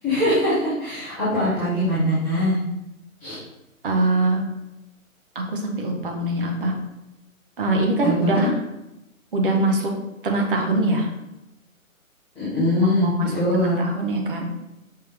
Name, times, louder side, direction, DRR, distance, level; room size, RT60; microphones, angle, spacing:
voice 1, 0.0-2.5 3.2-3.4 8.0-8.5 12.3-13.8, left 1 dB, 5° left, -15 dB, 0.6 m, -22 dB
voice 2, 3.8-4.4 5.3-6.7 7.6-8.6 9.3-9.9 10.2-11.1 12.8-14.4, right 2 dB, 40° right, 1 dB, 0.9 m, -23 dB
5.5 x 2.7 x 3.5 m, 0.90 s
figure-of-eight pair, 135°, 42 cm